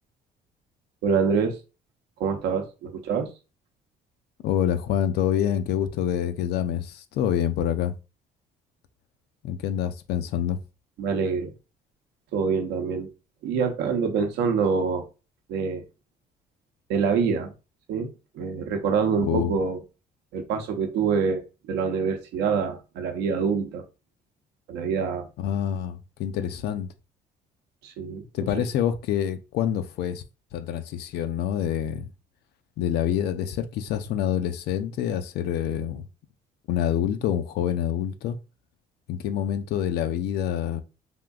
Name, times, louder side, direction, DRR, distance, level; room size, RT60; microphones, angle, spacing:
voice 1, 1.0-1.6 2.2-3.3 11.0-11.5 12.3-13.1 13.4-15.1 15.5-15.8 16.9-17.5 17.9-19.8 20.3-23.8 24.7-25.3 27.8-28.5, right 5 dB, 85° right, 0.7 m, -26 dB
voice 2, 4.4-7.9 9.4-10.6 19.2-19.5 25.4-26.9 28.3-30.2 30.5-32.1 32.8-36.0 36.7-38.4 39.1-40.8, left 10 dB, 70° left, 0.5 m, -26 dB
3.6 x 2.6 x 2.3 m
cardioid pair, 110°, 17 cm